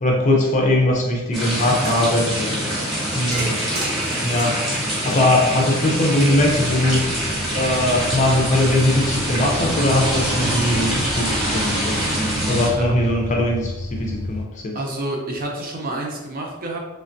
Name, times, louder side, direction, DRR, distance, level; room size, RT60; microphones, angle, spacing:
voice 1, 0.0-2.9 3.1-3.6 4.2-7.1 7.5-12.0 12.5-14.8, left 1 dB, 35° left, 0 dB, 0.5 m, -20 dB
sound 1, 1.3-12.7, right 1 dB, ahead, 0.8 m, -24 dB
sound 2, 1.7-2.2 3.3-5.8, right 2 dB, 75° right, 0.7 m, -33 dB
sound 3, 6.3-14.4, left 1 dB, 80° left, 0.5 m, -33 dB
voice 2, 14.7-16.8, right 1 dB, 40° right, 0 dB, 0.5 m, -28 dB
3.2 x 2.2 x 2.5 m, 1.1 s
head